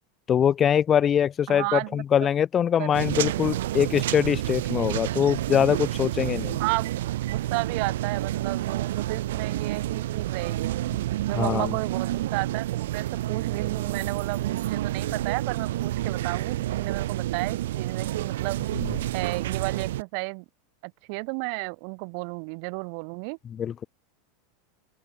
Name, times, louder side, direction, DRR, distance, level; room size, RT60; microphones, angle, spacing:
voice 1, 0.3-6.6 11.3-11.7 18.8-18.9 23.6-23.8, left 9 dB, 20° left, 0.6 m, -23 dB
voice 2, 1.5-2.3 2.8-3.0 6.6-6.9 7.3-10.8 11.3-18.6 19.1-20.4 20.8-23.4, right 40 dB or more, 50° right, 7.6 m, -32 dB
sound 1, 2.9-20.0, right 14 dB, 80° right, 4.6 m, -29 dB
open air
supercardioid pair, 165°, 0 cm